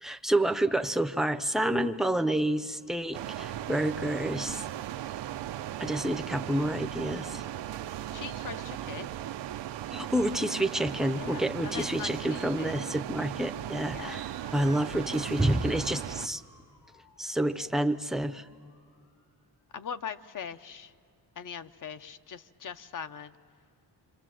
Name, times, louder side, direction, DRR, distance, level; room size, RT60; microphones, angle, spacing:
voice 1, 0.0-4.7 5.8-7.4 9.9-16.4 17.2-18.5, right 1 dB, ahead, 9 dB, 0.6 m, -29 dB
sound 1, 3.1-16.3, right 12 dB, 85° right, 0.6 m, -37 dB
voice 2, 7.3-7.6 8.1-9.1 11.1-12.8 13.9-14.2 19.7-20.9 21.4-23.4, left 7 dB, 50° left, 11 dB, 0.8 m, -41 dB
Motor vehicle (road) / Siren, 14.2-19.4, left 2 dB, 75° left, 5.5 m, -58 dB
26.5 x 26.0 x 7.6 m, 2.3 s
wide cardioid pair, 120°, 42 cm